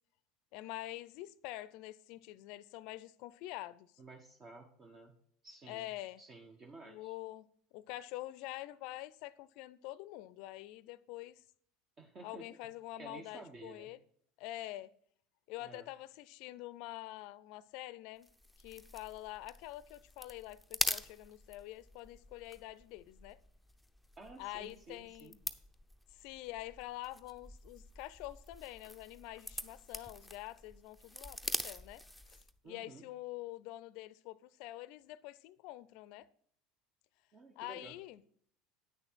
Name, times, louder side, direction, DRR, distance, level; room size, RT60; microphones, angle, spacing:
voice 1, 0.5-3.9 5.7-6.2 6.8-11.4 12.2-14.0 14.4-14.9 15.5-18.3 18.6-23.4 24.4-25.4 26.1-32.0 32.3-36.3 37.6-38.2, left 16 dB, 65° left, 0.5 m, -46 dB
voice 2, 4.0-5.2 5.4-5.9 6.2-7.1 12.0-12.5 13.0-13.9 15.6-15.9 24.2-25.4 32.6-33.1 37.3-37.9, right 3 dB, 35° right, 1.1 m, -53 dB
sound 1, 18.2-32.6, left 1 dB, ahead, 0.7 m, -44 dB
9.1 x 6.5 x 4.6 m
hypercardioid pair, 80°, 0 cm